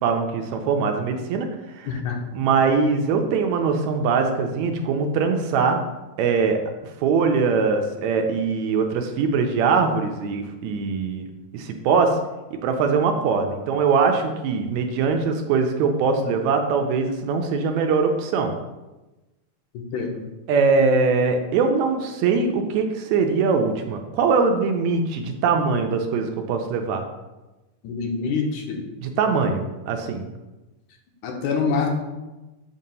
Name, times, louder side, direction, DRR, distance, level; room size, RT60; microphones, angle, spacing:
voice 1, 0.0-1.5 1.7-1.9 2.3-5.8 6.2-6.6 7.0-11.3 11.5-12.2 12.6-18.5 20.5-27.0 29.0-30.3, right 5 dB, 80° right, 4 dB, 1.8 m, -22 dB
voice 2, 1.9-2.4 19.9-20.2 27.8-28.8 31.2-31.9, left 5 dB, 80° left, 2 dB, 2.2 m, -26 dB
7.3 x 2.8 x 5.3 m, 1.1 s
omnidirectional pair, 3.4 m